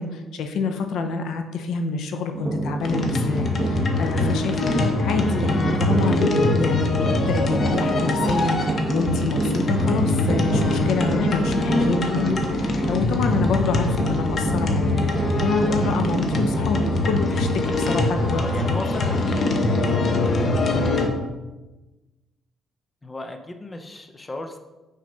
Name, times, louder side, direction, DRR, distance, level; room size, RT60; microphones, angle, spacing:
voice 1, 0.0-15.0 15.4-18.4, left 4 dB, 75° left, 6 dB, 0.7 m, -27 dB
sound 1, 2.3-17.3, right 2 dB, 20° right, 1.4 m, -28 dB
sound 2, 2.8-21.1, left 2 dB, 40° left, 1.0 m, -23 dB
voice 2, 18.2-19.6 23.0-24.6, left 2 dB, 20° left, 5 dB, 0.6 m, -35 dB
6.2 x 4.2 x 5.3 m, 1.1 s
cardioid pair, 110°, 0 cm